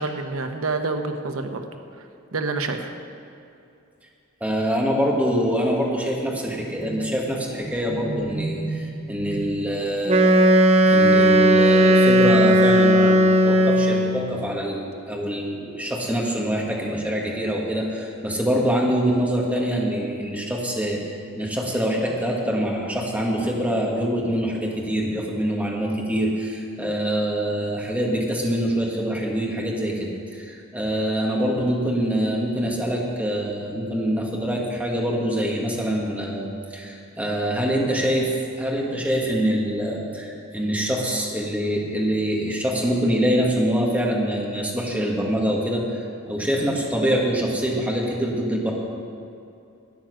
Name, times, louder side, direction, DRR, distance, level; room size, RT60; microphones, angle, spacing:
voice 1, 0.0-1.6 2.3-2.9, right 3 dB, 80° right, 6 dB, 1.0 m, -27 dB
voice 2, 4.4-10.4 10.8-48.7, equal, 5° right, -2 dB, 1.6 m, -25 dB
Wind instrument woodwind instrument, 10.1-14.2, equal, 30° right, 0.7 m, -16 dB
12.5 x 9.1 x 6.3 m, 2.6 s
head